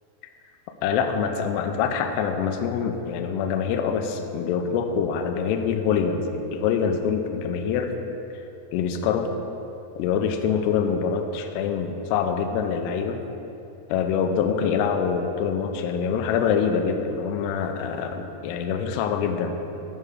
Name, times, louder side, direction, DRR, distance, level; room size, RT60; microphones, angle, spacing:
voice 1, 0.8-7.9 8.7-9.3 10.0-13.2 13.9-19.6, left 6 dB, 90° left, 5 dB, 2.4 m, -25 dB
11.5 x 6.6 x 4.8 m, 2.8 s
omnidirectional pair, 5.4 m